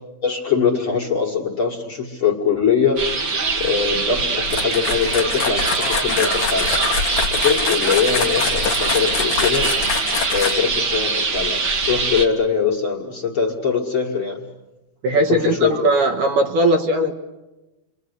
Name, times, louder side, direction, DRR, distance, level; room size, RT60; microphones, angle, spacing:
voice 1, 0.2-3.0 3.6-6.7 7.3-9.7 10.3-11.6 11.9-14.5 15.3-15.8, left 6 dB, 40° left, -2 dB, 2.3 m, -22 dB
sound 1, 3.0-12.3, right 3 dB, 45° right, 1.7 m, -23 dB
sound 2, 4.5-10.8, left 6 dB, 65° left, 1.2 m, -26 dB
voice 2, 15.0-17.1, right 1 dB, 65° right, 3 dB, 2.7 m, -18 dB
30.0 x 24.0 x 8.2 m, 1.1 s
omnidirectional pair, 4.3 m